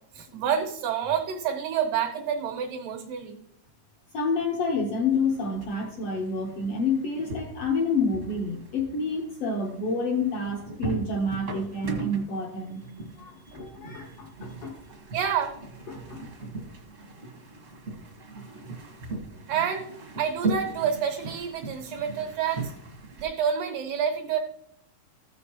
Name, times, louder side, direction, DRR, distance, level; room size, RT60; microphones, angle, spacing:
voice 1, 0.1-3.4 15.1-15.5 19.5-19.9 20.2-22.7 23.2-24.4, right 8 dB, 85° right, 2 dB, 2.7 m, -28 dB
voice 2, 4.1-12.8 13.2-14.7 15.9-16.2, left 3 dB, 75° left, 2 dB, 1.4 m, -28 dB
sound 1, 5.1-23.3, right 2 dB, 50° right, 0.8 m, -38 dB
14.0 x 6.4 x 2.9 m, 0.70 s
omnidirectional pair, 3.8 m